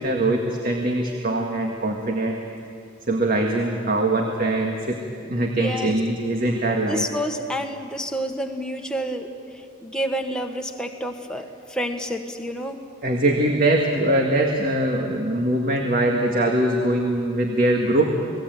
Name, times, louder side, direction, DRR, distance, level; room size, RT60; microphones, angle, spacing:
voice 1, 0.0-2.4 3.1-5.0 5.3-7.1 13.0-18.3, right 1 dB, 40° right, 2 dB, 1.9 m, -22 dB
voice 2, 5.6-6.0 6.8-9.3 9.8-12.8, equal, 5° left, 2 dB, 1.6 m, -29 dB
29.0 x 19.5 x 9.3 m, 2.5 s
head